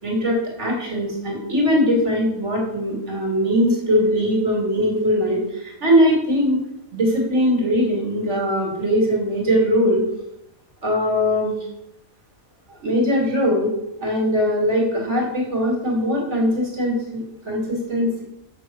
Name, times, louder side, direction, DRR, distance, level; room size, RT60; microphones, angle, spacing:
voice 1, 0.0-6.6 6.9-10.0 10.8-11.5 12.7-13.7 14.0-18.2, equal, 50° right, -1 dB, 2.9 m, -21 dB
7.0 x 6.3 x 6.2 m, 0.83 s
omnidirectional pair, 1.5 m